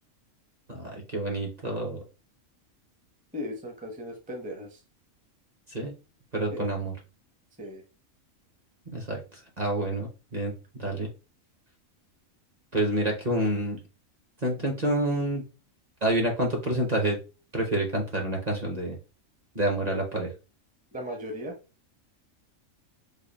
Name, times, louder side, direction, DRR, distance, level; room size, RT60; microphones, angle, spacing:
voice 1, 0.7-2.0 5.7-5.9 6.3-6.9 8.9-9.2 9.6-10.5 10.8-11.1 12.7-13.8 14.4-15.4 16.0-17.2 17.5-19.0 19.5-20.3, right 1 dB, 35° right, 0 dB, 0.8 m, -28 dB
voice 2, 3.3-4.8 6.5-6.6 7.6-7.8 20.9-21.5, left 1 dB, 10° right, 2 dB, 0.5 m, -37 dB
3.4 x 2.2 x 3.9 m, 0.31 s
omnidirectional pair, 1.4 m